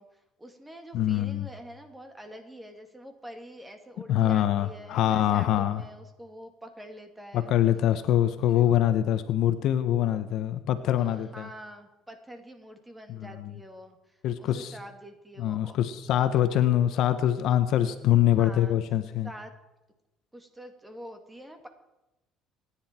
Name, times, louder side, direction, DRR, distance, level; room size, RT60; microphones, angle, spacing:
voice 1, 0.0-7.5 8.4-8.7 10.9-15.8 18.3-18.8 19.2-19.5 20.3-21.7, equal, 10° right, 6 dB, 2.2 m, -46 dB
voice 2, 0.9-1.5 4.1-5.8 7.3-11.5 13.1-13.5 14.2-14.7 15.4-19.3, left 11 dB, 65° left, 10 dB, 1.2 m, -24 dB
27.0 x 10.5 x 4.5 m, 0.97 s
cardioid pair, 135°, 0 cm